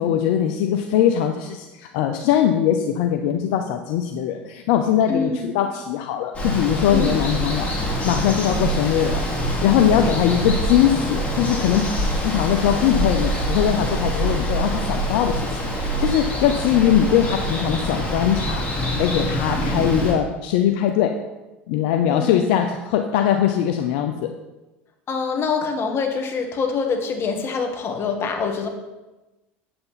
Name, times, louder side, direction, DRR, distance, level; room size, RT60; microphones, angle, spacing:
voice 1, 0.0-7.7 8.0-9.2 9.6-11.9 12.2-21.2 21.7-24.4, left 10 dB, 70° left, 5 dB, 0.6 m, -21 dB
voice 2, 5.1-5.5 6.9-7.2 22.0-22.5 25.1-28.7, left 5 dB, 40° left, 4 dB, 1.6 m, -25 dB
Water, 6.3-20.1, equal, 20° left, 3.0 m, -25 dB
7.9 x 7.7 x 4.1 m, 1.1 s
hypercardioid pair, 85°, 6 cm